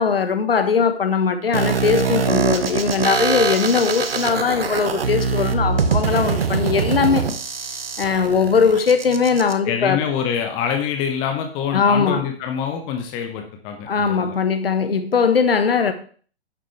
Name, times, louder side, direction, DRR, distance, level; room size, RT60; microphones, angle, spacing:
voice 1, 0.0-7.3 8.0-10.0 11.7-12.2 13.9-15.9, left 5 dB, 60° left, 1.3 m, -20 dB
sound 1, 1.5-9.5, right 5 dB, 60° right, 1.0 m, -23 dB
voice 2, 9.6-14.4, left 8 dB, 15° left, 0.8 m, -25 dB
10.5 x 7.5 x 3.3 m
figure-of-eight pair, 125°, 33 cm